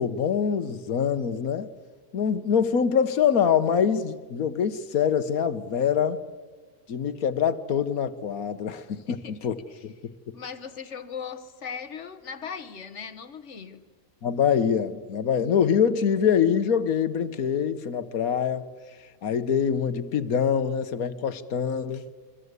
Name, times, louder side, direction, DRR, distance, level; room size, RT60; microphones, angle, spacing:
voice 1, 0.0-1.7 2.1-6.2 6.9-9.9 14.2-18.7 19.2-22.0, left 7 dB, 75° left, 1.6 m, -24 dB
voice 2, 9.1-9.8 10.3-13.8, left 6 dB, 55° left, 1.5 m, -39 dB
27.0 x 24.0 x 8.2 m
omnidirectional pair, 1.5 m